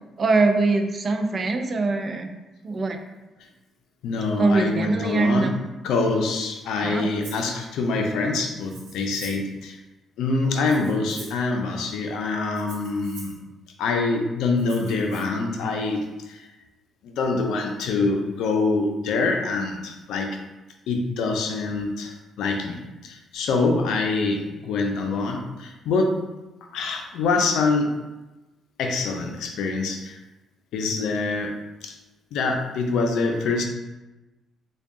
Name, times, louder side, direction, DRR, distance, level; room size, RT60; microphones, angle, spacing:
voice 1, 0.2-2.3 2.6-3.0 4.4-5.5 6.8-7.1, right 3 dB, 40° right, 5 dB, 0.4 m, -22 dB
voice 2, 4.0-5.6 5.8-9.8 10.2-13.4 13.8-16.5 17.0-20.4 20.9-26.2 26.7-27.9 28.8-30.2 30.7-31.9 32.3-33.6, left 3 dB, 85° left, 3 dB, 0.5 m, -25 dB
Rattle (instrument), 7.2-7.5 8.6-9.5 10.5-11.5 12.5-13.4 14.6-15.2, right 3 dB, 90° right, 1.1 m, -45 dB
3.5 x 2.3 x 3.7 m, 1.1 s
cardioid pair, 90°, 0 cm